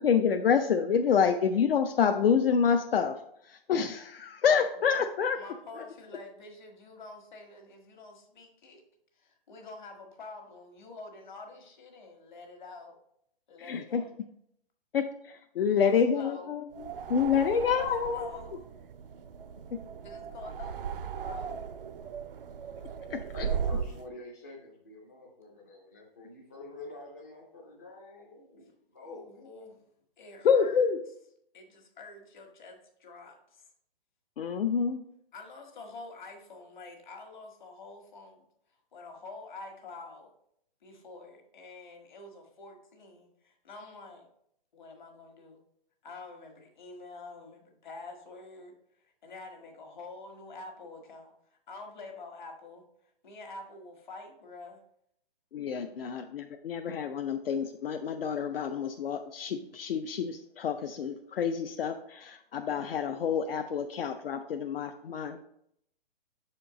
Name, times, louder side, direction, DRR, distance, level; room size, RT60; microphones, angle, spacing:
voice 1, 0.0-3.1 3.5-5.4 13.6-14.0 14.9-16.6 17.1-18.3 23.1-23.2 30.4-31.0 34.4-35.0 55.5-65.4, left 7 dB, 70° left, 6 dB, 0.5 m, -27 dB
voice 2, 5.3-8.8 9.1-12.9 13.5-14.1 15.6-16.5 17.3-18.6 20.0-21.6 29.1-29.7 30.2-30.8 31.5-33.7 35.3-38.5 38.9-40.3 40.8-44.3 44.7-45.6 46.0-52.8 53.2-54.8 55.9-56.0, left 3 dB, 50° left, 3 dB, 1.4 m, -47 dB
sound 1, 16.7-24.0, right 7 dB, 65° right, 0.5 m, -37 dB
voice 3, 23.3-29.4, left 2 dB, 20° left, -4 dB, 0.4 m, -47 dB
6.3 x 4.4 x 3.8 m, 0.72 s
hypercardioid pair, 170°, 30 cm